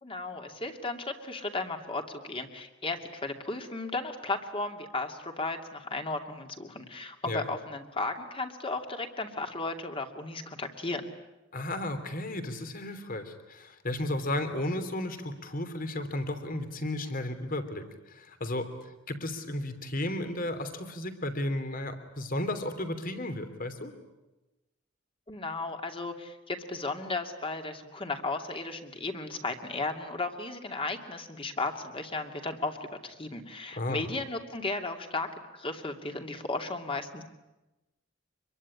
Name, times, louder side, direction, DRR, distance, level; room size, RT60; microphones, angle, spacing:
voice 1, 0.0-11.1 25.3-35.3 35.5-37.2, left 3 dB, 30° left, 5 dB, 2.6 m, -35 dB
voice 2, 11.5-18.7 19.1-23.9 33.8-34.0, left 1 dB, 45° left, 9 dB, 3.2 m, -34 dB
26.0 x 23.0 x 9.9 m, 1.0 s
head